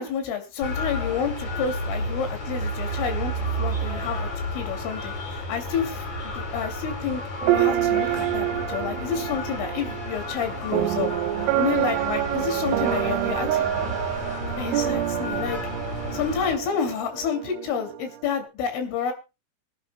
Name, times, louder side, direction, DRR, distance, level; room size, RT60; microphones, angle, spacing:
voice 1, 0.0-3.3 3.6-6.1 6.5-7.2 7.5-11.1 11.6-13.7 14.6-15.6 16.1-19.1, left 7 dB, 75° left, 6 dB, 5.3 m, -29 dB
sound 1, 0.6-16.6, left 1 dB, 40° left, 4.7 m, -32 dB
sound 2, 7.4-18.5, right 14 dB, 80° right, 2.9 m, -27 dB
24.5 x 10.5 x 2.3 m, 0.28 s
omnidirectional pair, 5.8 m